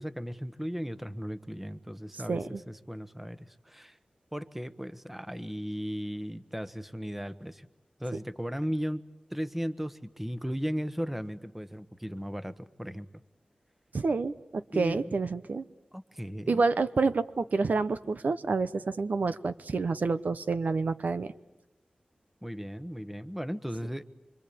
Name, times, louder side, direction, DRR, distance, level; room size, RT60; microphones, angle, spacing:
voice 1, 0.0-4.0 4.3-7.7 8.0-9.0 9.3-13.1 14.7-15.2 15.9-16.7 22.4-24.0, equal, 5° right, 13 dB, 1.2 m, -36 dB
voice 2, 13.9-15.6 16.5-21.3, right 4 dB, 75° right, 12 dB, 0.9 m, -28 dB
26.0 x 25.5 x 8.6 m, 0.91 s
wide cardioid pair, 70°, 3 cm